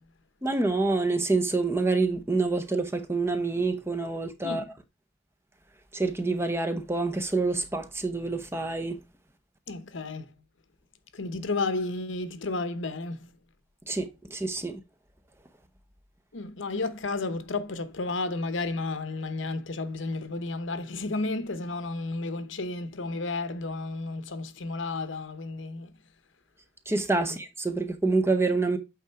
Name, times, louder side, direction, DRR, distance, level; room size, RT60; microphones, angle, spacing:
voice 1, 0.4-4.6 5.9-9.0 13.9-14.8 26.9-28.8, right 3 dB, 15° right, 0.7 m, -27 dB
voice 2, 9.7-10.2 11.1-13.3 16.3-25.9 27.2-27.3, left 3 dB, 75° left, 0.9 m, -32 dB
8.5 x 3.7 x 4.5 m
head